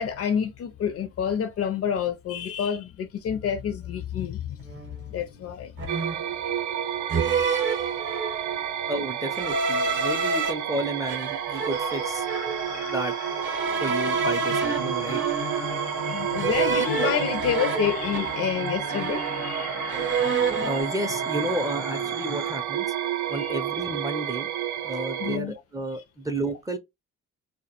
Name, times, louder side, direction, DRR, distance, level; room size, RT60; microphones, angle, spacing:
voice 1, 0.0-4.6 5.1-5.7 7.6-7.8 8.1-8.2 14.9-15.3 15.7-20.4 23.4-23.5 25.2-25.5, left 8 dB, 50° left, 0.4 m, -29 dB
sound 1, 4.7-4.9 5.8-6.3 7.1-8.5 9.3-10.5 11.1-12.6 13.4-15.8 16.4-18.6 18.9-19.6 19.9-20.8, right 4 dB, 40° right, 0.7 m, -29 dB
sound 2, 5.9-25.4, right 9 dB, 75° right, 0.5 m, -30 dB
voice 2, 8.9-12.2 12.6-13.1 13.8-15.2 20.6-22.9 23.3-24.5 24.8-26.8, right 1 dB, 10° right, 0.4 m, -31 dB
sound 3, 11.7-22.6, left 8 dB, 90° left, 0.8 m, -39 dB
2.1 x 2.1 x 2.8 m
cardioid pair, 90°, 30 cm